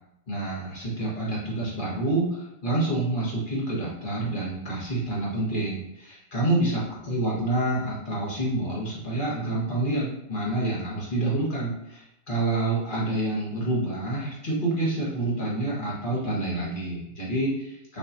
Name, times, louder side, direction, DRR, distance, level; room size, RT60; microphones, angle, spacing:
voice 1, 0.3-18.0, right 2 dB, 30° left, -6 dB, 1.4 m, -28 dB
5.8 x 3.2 x 2.7 m, 0.85 s
omnidirectional pair, 2.0 m